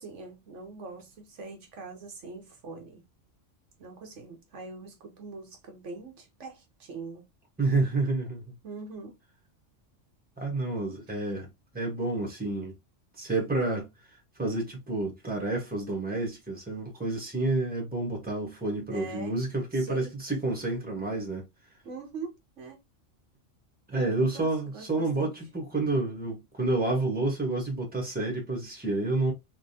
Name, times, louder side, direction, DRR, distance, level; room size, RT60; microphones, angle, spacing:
voice 1, 0.0-3.0 3.8-7.2 8.6-9.2 18.9-19.4 19.7-20.1 21.8-22.8 24.2-25.3, right 3 dB, 70° right, 1.1 m, -42 dB
voice 2, 7.6-8.4 10.4-11.5 11.7-12.7 13.2-13.9 14.4-21.4 23.9-29.3, right 2 dB, 10° right, 1.2 m, -29 dB
3.5 x 2.6 x 2.7 m
omnidirectional pair, 1.3 m